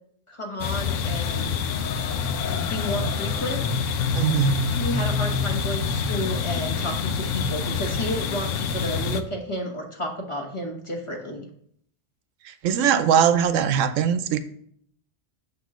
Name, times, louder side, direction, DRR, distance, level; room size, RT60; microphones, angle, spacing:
voice 1, 0.3-1.6 2.4-3.6 4.7-11.5, equal, 25° left, 1.1 m, -32 dB
sound 1, 0.6-9.2, left 5 dB, 80° left, 1.0 m, -26 dB
voice 2, 4.1-4.6 12.6-14.4, right 8 dB, 85° right, 1.0 m, -20 dB
8.0 x 3.0 x 6.2 m
omnidirectional pair, 1.3 m